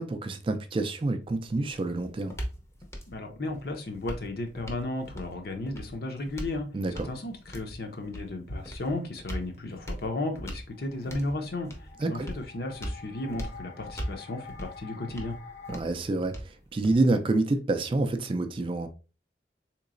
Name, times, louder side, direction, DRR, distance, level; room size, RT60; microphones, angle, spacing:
voice 1, 0.0-2.4 6.7-7.1 12.0-12.3 15.7-18.9, right 2 dB, 30° right, 0.3 m, -28 dB
sound 1, 1.2-17.3, equal, 15° left, 0.6 m, -41 dB
voice 2, 3.1-6.7 7.0-15.3, left 2 dB, 55° left, 0.7 m, -34 dB
sound 2, 10.7-15.8, left 5 dB, 80° left, 1.1 m, -47 dB
3.8 x 2.9 x 2.5 m
head